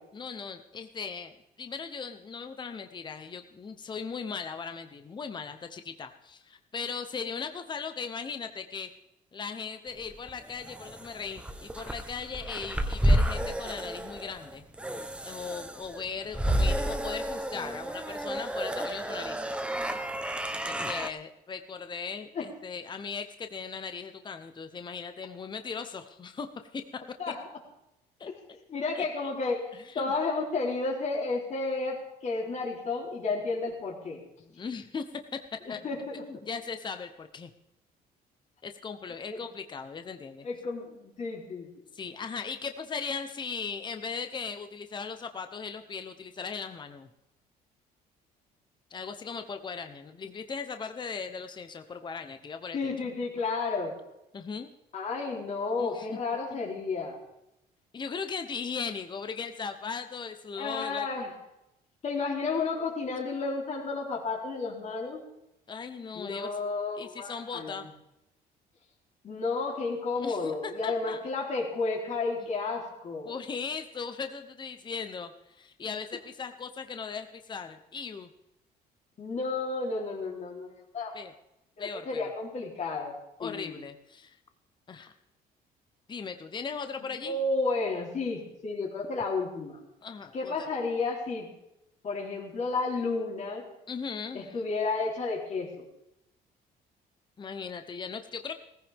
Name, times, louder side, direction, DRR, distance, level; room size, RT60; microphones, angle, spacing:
voice 1, 0.1-1.3 1.6-8.9 9.3-14.6 15.2-19.4 20.6-26.5 26.7-26.8 28.2-28.3 28.9-29.3 29.7-30.1 34.4-35.0 35.3-35.4 35.7-35.8 36.1-37.5 38.6-40.5 41.9-47.1 48.9-52.9 54.3-54.7 55.8-56.2 57.9-61.1 65.7-66.5 66.9-67.9 70.2-71.2 73.2-78.3 81.1-81.3 81.8-82.3 83.4-84.4 84.9-85.1 86.1-87.4 90.0-90.7 93.9-94.6 97.4-98.5, left 5 dB, 25° left, 7 dB, 1.0 m, -38 dB
sound 1, 10.0-21.1, right 1 dB, 5° right, 1.1 m, -31 dB
voice 2, 28.7-34.2 35.7-36.2 39.3-39.4 40.4-41.7 52.7-53.9 54.9-57.2 60.6-61.3 62.0-65.2 66.1-67.7 69.2-73.4 79.2-81.2 81.8-83.7 87.0-89.8 90.3-91.5 92.0-93.6 94.3-95.9, left 3 dB, 45° left, -2 dB, 3.7 m, -32 dB
18.0 x 15.5 x 3.7 m, 0.87 s
cardioid pair, 110°, 17 cm